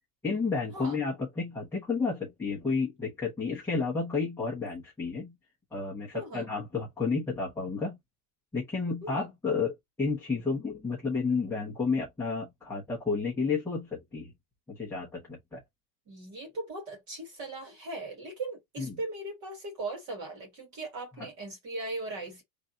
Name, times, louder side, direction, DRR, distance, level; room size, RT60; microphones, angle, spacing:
voice 1, 0.2-5.3 5.7-8.0 8.5-14.3 14.7-15.6 18.8-19.0, left 4 dB, 5° left, 0.8 m, -31 dB
voice 2, 6.1-6.5 9.0-9.3 16.1-22.4, right 2 dB, 40° right, 1.9 m, -39 dB
3.4 x 2.5 x 3.8 m
cardioid pair, 175°, 45 cm